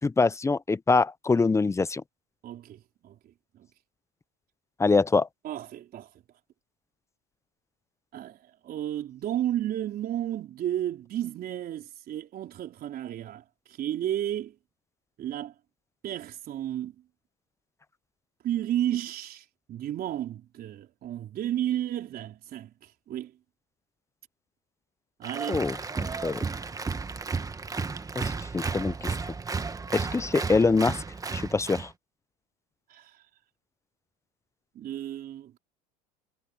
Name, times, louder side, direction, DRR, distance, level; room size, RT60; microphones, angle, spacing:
voice 1, 0.0-2.0 4.8-5.3 25.5-25.8 26.2-26.4 28.1-29.1 29.9-31.0 31.3-31.9, left 4 dB, 15° left, 0.8 m, -24 dB
voice 2, 2.4-3.7 5.4-6.1 8.1-14.6 15.2-15.5 16.0-17.0 18.4-23.3 25.2-25.6 32.9-33.2 34.7-35.6, right 12 dB, 50° right, 4.2 m, -33 dB
Applause, 25.2-31.9, right 4 dB, 15° right, 1.5 m, -33 dB
supercardioid pair, 95°, 20 cm